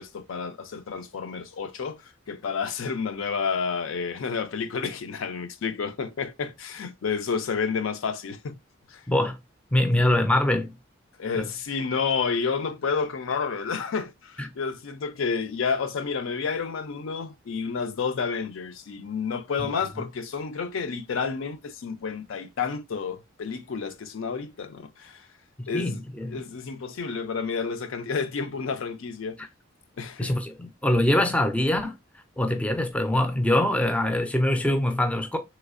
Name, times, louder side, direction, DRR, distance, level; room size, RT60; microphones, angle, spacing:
voice 1, 0.0-8.6 8.9-9.0 11.2-25.3 25.7-26.0 26.3-29.4 30.0-30.3, left 5 dB, 70° left, 0.4 m, -30 dB
voice 2, 9.1-9.4 9.7-10.7 11.4-11.5 14.4-14.5 19.6-19.7 25.6-26.4 30.2-31.9 32.4-35.4, left 1 dB, 5° left, 0.4 m, -24 dB
3.4 x 3.1 x 2.4 m
head